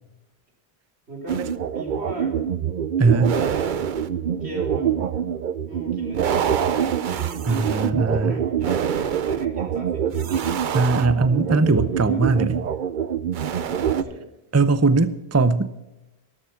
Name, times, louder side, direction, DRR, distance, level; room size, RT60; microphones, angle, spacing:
voice 1, 1.1-2.4 3.3-3.8 4.4-5.0 5.7-6.7 7.0-10.4 11.3-12.3 13.5-14.3, right 1 dB, 80° right, 1 dB, 4.1 m, -37 dB
sound 1, 1.3-14.0, right 8 dB, 55° right, 0.7 m, -25 dB
voice 2, 3.0-3.4 7.5-8.4 10.7-12.6 14.5-15.7, right 3 dB, 20° right, 14 dB, 0.5 m, -20 dB
13.0 x 13.0 x 5.7 m, 0.97 s
omnidirectional pair, 1.1 m